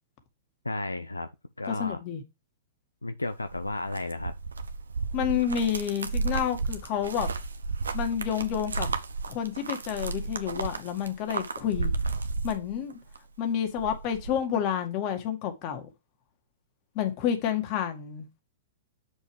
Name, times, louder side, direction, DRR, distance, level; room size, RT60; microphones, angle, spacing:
voice 1, 0.6-1.3 1.6-2.0 3.0-4.3, left 2 dB, 90° left, 0.6 m, -33 dB
voice 2, 1.7-2.2 5.1-7.3 7.9-8.9 9.3-11.9 12.4-13.0 13.4-15.9 17.0-18.3, left 9 dB, 40° left, 2.0 m, -29 dB
sound 1, 3.2-13.2 13.5-14.4, right 4 dB, 80° right, 1.0 m, -33 dB
7.4 x 6.4 x 3.3 m
figure-of-eight pair, 105°, 0 cm